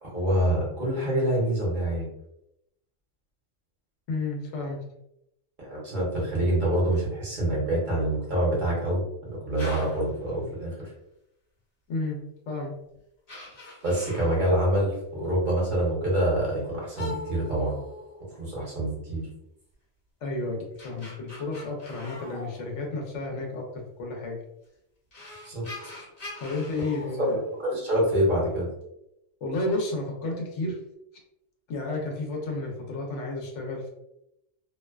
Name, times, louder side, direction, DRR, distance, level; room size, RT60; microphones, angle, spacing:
voice 1, 0.0-2.1 5.6-10.7 13.8-17.8 18.3-19.3 25.4-25.7 27.3-28.7, right 1 dB, 45° right, -5 dB, 1.0 m, -26 dB
voice 2, 4.1-4.8 11.9-12.2 12.5-12.7 20.2-24.4 26.4-27.4 29.4-30.8 31.7-33.9, left 2 dB, 80° left, 0 dB, 1.0 m, -31 dB
sound 1, 9.6-10.1 12.2-12.3 12.9-13.0 13.3-14.6 16.9-18.6 20.5-23.2 24.6-24.7 25.1-28.0, left 2 dB, 55° left, 1.1 m, -42 dB
2.5 x 2.1 x 2.3 m, 0.81 s
omnidirectional pair, 1.2 m